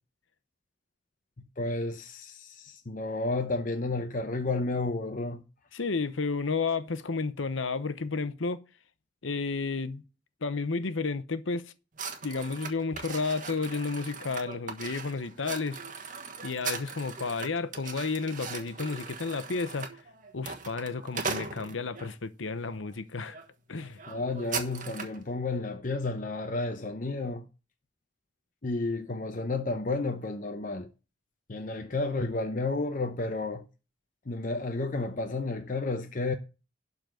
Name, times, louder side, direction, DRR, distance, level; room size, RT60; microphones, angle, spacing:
voice 1, 1.4-5.4 24.1-27.5 28.6-30.9 31.5-33.6 34.3-36.3, left 3 dB, 45° left, 0.8 m, -31 dB
voice 2, 5.7-8.6 9.2-10.0 10.4-11.6 12.2-16.1 16.4-19.9 20.3-23.4 23.7-24.0, left 4 dB, 90° left, 0.9 m, -32 dB
sound 1, 12.0-22.1 22.7-22.9 23.3-23.5 23.7-25.2, right 5 dB, 45° right, 1.3 m, -39 dB
12.0 x 4.0 x 7.7 m
head